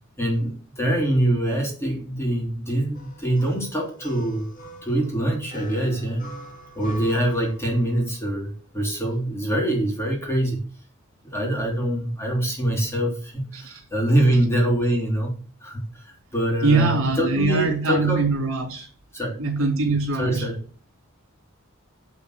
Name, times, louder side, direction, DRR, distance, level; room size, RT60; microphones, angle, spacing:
voice 1, 0.2-4.5 4.8-6.3 6.8-10.6 11.2-15.4 15.6-18.3 19.1-19.4 20.2-20.6, right 1 dB, 10° left, 3.5 m, -24 dB
sound 1, 2.9-8.1, right 1 dB, 40° left, 2.5 m, -42 dB
voice 2, 16.6-18.9 19.4-20.5, right 3 dB, 65° right, 3.9 m, -23 dB
11.0 x 5.0 x 6.6 m
head